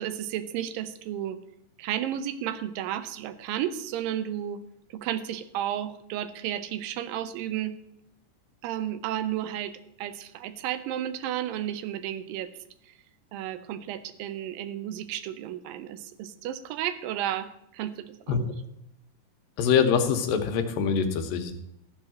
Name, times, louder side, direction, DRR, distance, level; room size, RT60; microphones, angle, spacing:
voice 1, 0.0-1.4 1.8-4.6 4.9-7.8 8.6-9.7 10.0-12.5 13.3-18.5, right 11 dB, 85° right, 12 dB, 2.4 m, -33 dB
voice 2, 19.6-21.5, left 7 dB, 85° left, 7 dB, 2.7 m, -24 dB
13.5 x 4.7 x 7.5 m, 0.81 s
omnidirectional pair, 4.0 m